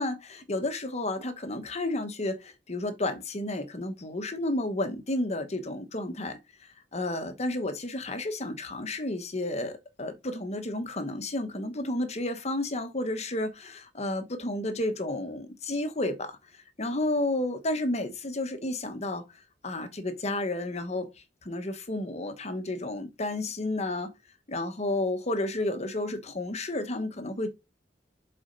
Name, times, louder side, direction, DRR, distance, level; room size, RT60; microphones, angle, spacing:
voice 1, 0.0-19.2 19.6-21.1 21.4-24.1 24.5-27.5, left 1 dB, 40° left, 1.2 m, -31 dB
7.1 x 4.3 x 5.2 m
head